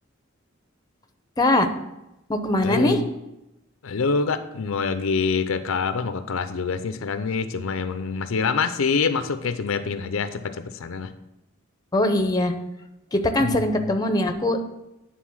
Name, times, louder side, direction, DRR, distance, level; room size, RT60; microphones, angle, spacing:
voice 1, 1.4-1.7 2.3-3.0 11.9-12.5 13.1-14.6, left 1 dB, 20° left, 6 dB, 0.7 m, -21 dB
voice 2, 2.6-3.1 3.8-11.1 13.4-14.0, left 5 dB, 85° left, 10 dB, 0.5 m, -26 dB
9.3 x 3.8 x 6.1 m, 0.92 s
head